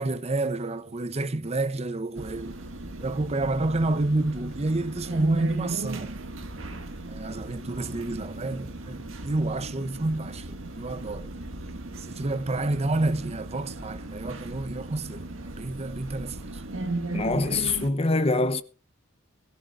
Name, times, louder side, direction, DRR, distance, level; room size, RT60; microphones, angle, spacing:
voice 1, 0.0-2.6 3.0-6.2 7.1-11.3 12.0-16.6, right 2 dB, 30° right, 0.7 m, -29 dB
sound 1, 2.2-17.9, right 2 dB, 75° right, 1.9 m, -37 dB
voice 2, 17.1-18.6, left 2 dB, 30° left, 0.9 m, -24 dB
20.5 x 14.0 x 2.5 m
head